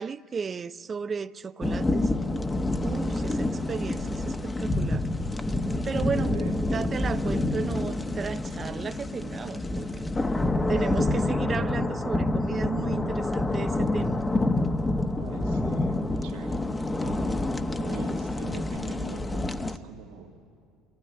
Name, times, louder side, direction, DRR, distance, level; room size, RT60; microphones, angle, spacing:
voice 1, 0.0-2.1 2.8-5.1 5.8-6.3 6.7-9.9 10.7-14.2, right 6 dB, 35° right, 0.6 m, -34 dB
sound 1, 1.6-19.8, left 2 dB, 15° left, 1.0 m, -28 dB
voice 2, 15.2-17.4 17.8-20.4, right 8 dB, 80° right, 2.0 m, -43 dB
23.5 x 16.5 x 9.8 m
supercardioid pair, 80°, 0 cm